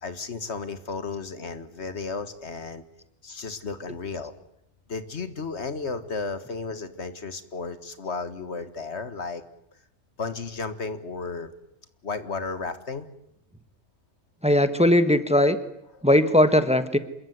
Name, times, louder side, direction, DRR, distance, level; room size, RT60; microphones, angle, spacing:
voice 1, 0.0-2.8 3.2-4.3 4.9-9.4 10.2-11.5 12.0-13.1 15.9-16.1, left 4 dB, 75° left, 11 dB, 2.0 m, -33 dB
voice 2, 14.4-15.6 16.0-17.0, left 1 dB, 5° right, 11 dB, 1.4 m, -19 dB
27.0 x 22.5 x 9.5 m, 0.80 s
omnidirectional pair, 1.1 m